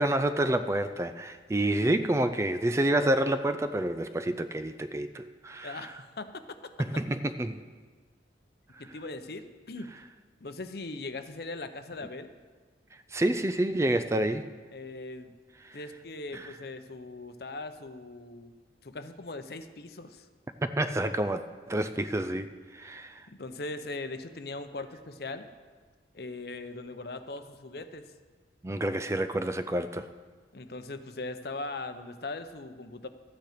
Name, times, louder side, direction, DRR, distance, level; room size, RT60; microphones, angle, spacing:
voice 1, 0.0-5.9 6.8-7.6 13.1-14.5 15.6-15.8 16.3-16.5 20.8-21.4 21.7-23.3 28.6-30.1, right 1 dB, 15° right, 10 dB, 0.4 m, -28 dB
voice 2, 5.6-6.7 8.8-9.9 10.4-12.3 14.7-15.3 15.7-18.5 18.8-20.3 23.3-25.5 26.1-28.1 30.5-33.1, left 2 dB, 60° left, 9 dB, 0.7 m, -40 dB
13.0 x 9.3 x 5.0 m, 1.4 s
head